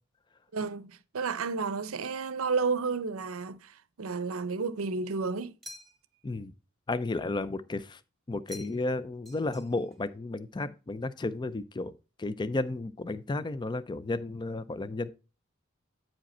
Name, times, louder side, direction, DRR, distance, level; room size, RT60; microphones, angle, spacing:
voice 1, 0.5-5.6, right 4 dB, 85° right, 0.6 m, -32 dB
sound 1, 5.6-6.2 8.5-9.0 9.2-10.0, equal, ahead, 1.6 m, -48 dB
voice 2, 6.9-8.0 8.3-11.9 12.2-15.1, left 2 dB, 20° left, 0.4 m, -33 dB
9.0 x 5.1 x 4.2 m
head